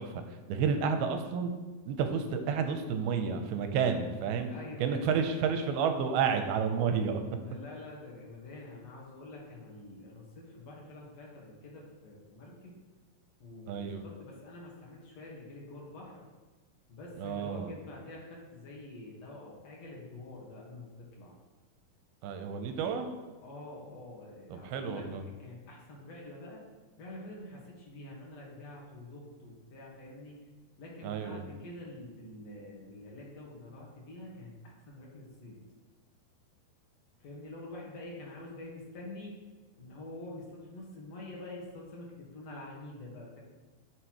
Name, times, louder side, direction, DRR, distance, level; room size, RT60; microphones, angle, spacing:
voice 1, 0.0-1.5 1.9-4.5 4.8-7.2 13.7-14.0 17.2-17.7 22.2-23.1 24.5-25.2 31.0-31.4, right 6 dB, 90° right, 6 dB, 2.6 m, -31 dB
voice 2, 4.5-5.3 7.4-12.7 13.4-16.2 16.9-21.3 23.4-25.1 25.4-26.6 27.0-30.4 30.8-35.6 37.2-39.4 39.8-43.4, left 2 dB, 55° left, -3 dB, 2.3 m, -47 dB
11.0 x 6.6 x 3.0 m, 1.2 s
omnidirectional pair, 4.4 m